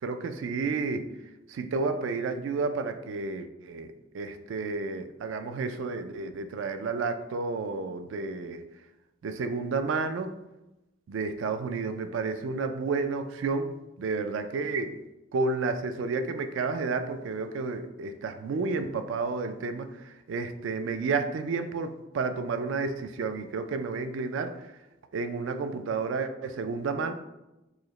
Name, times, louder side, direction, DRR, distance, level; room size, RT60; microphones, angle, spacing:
voice 1, 0.0-1.1 1.5-8.6 9.2-10.3 11.1-14.9 15.3-24.7 25.1-27.1, right 4 dB, 70° right, 8 dB, 0.3 m, -31 dB
4.7 x 2.0 x 3.0 m, 0.97 s
head